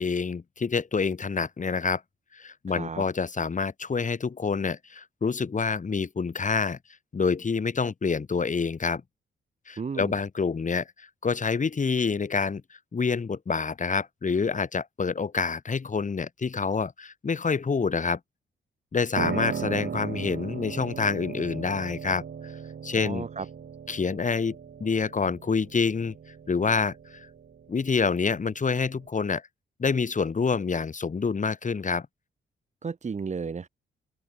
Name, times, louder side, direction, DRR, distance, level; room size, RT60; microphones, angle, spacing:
voice 1, 0.0-2.0 2.3-6.8 7.1-9.0 9.7-12.6 12.9-18.2 18.9-22.5 22.8-23.3 23.9-26.1 26.5-27.3 27.7-29.4 29.8-32.1, left 5 dB, 40° left, 3.7 m, -27 dB
voice 2, 2.7-3.0 9.8-10.2 23.0-23.5 32.8-33.7, right 5 dB, 35° right, 1.1 m, -33 dB
Piano, 19.2-29.1, right 7 dB, 60° right, 4.3 m, -37 dB
open air
wide cardioid pair, 120°, 21 cm